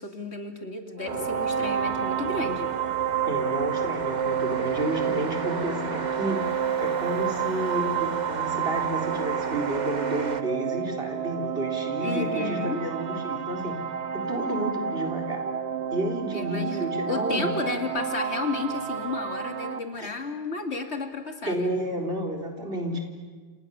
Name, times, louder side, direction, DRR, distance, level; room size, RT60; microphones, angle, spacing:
voice 1, 0.0-2.7 12.0-12.8 16.3-21.7 22.9-23.0, left 3 dB, 80° left, 4 dB, 2.9 m, -32 dB
sound 1, 1.0-19.8, right 8 dB, 85° right, 1.5 m, -30 dB
sound 2, 1.1-10.4, right 4 dB, 40° right, 1.4 m, -36 dB
voice 2, 3.3-6.4 6.8-13.7 14.1-15.4 15.9-17.5 20.0-20.1 21.5-23.0, right 1 dB, 60° right, 1 dB, 4.3 m, -31 dB
29.0 x 28.5 x 7.2 m, 1.4 s
omnidirectional pair, 1.1 m